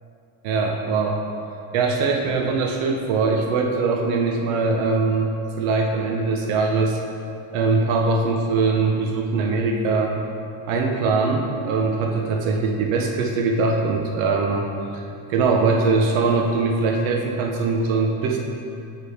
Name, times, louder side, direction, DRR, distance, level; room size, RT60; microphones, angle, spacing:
voice 1, 0.4-1.2 1.7-7.0 7.5-10.2 10.7-15.0 15.3-18.4, right 4 dB, 85° right, 1 dB, 0.8 m, -22 dB
8.2 x 3.7 x 3.5 m, 2.7 s
cardioid pair, 155°, 47 cm